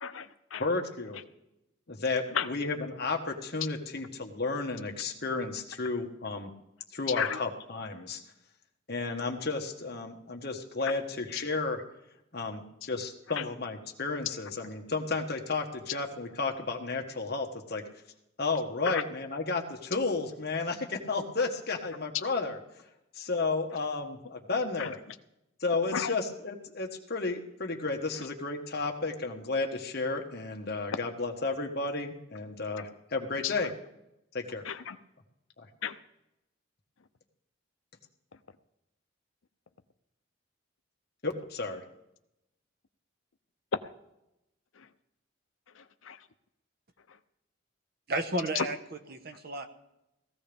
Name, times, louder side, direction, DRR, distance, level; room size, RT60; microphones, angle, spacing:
voice 1, 0.0-0.6 2.3-2.5 7.2-7.4 13.4-13.5 18.9-19.0 24.8-24.9 25.9-26.1 33.4-33.5 34.6-35.0 35.8-36.0 43.7-43.8 45.8-46.2 48.6-48.7, left 7 dB, 75° left, 10 dB, 0.6 m, -32 dB
voice 2, 0.6-1.2 1.9-6.5 6.9-8.2 8.9-11.8 12.3-17.8 18.4-22.6 23.1-25.0 25.6-33.7 34.3-34.6 41.2-41.8, left 3 dB, 50° left, 2 dB, 1.5 m, -32 dB
voice 3, 48.1-49.7, right 2 dB, 50° right, 6 dB, 1.2 m, -33 dB
18.5 x 15.0 x 3.5 m, 0.88 s
head